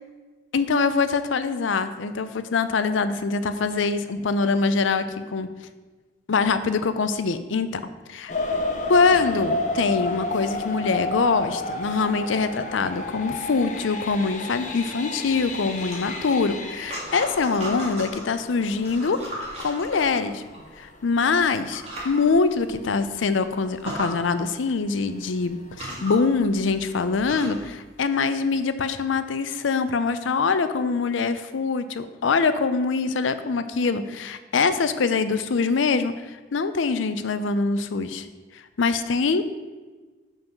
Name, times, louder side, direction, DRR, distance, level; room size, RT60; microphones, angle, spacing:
voice 1, 0.5-5.5 6.3-7.8 8.1-8.3 8.9-19.2 19.6-20.4 20.8-36.1 36.5-38.2 38.8-39.4, left 4 dB, 90° left, 11 dB, 0.5 m, -24 dB
sound 1, 8.3-20.9 21.5-21.6 22.1-22.3 22.6-22.7, left 2 dB, 40° left, 0.7 m, -31 dB
sound 2, 15.8-18.3 18.7-20.6 21.3-21.4 21.7-22.2 22.7-22.8 23.1-23.2 23.7-24.1 25.1-25.2 25.6-27.7, equal, 35° right, 1.9 m, -36 dB
5.6 x 5.5 x 5.8 m, 1.3 s
head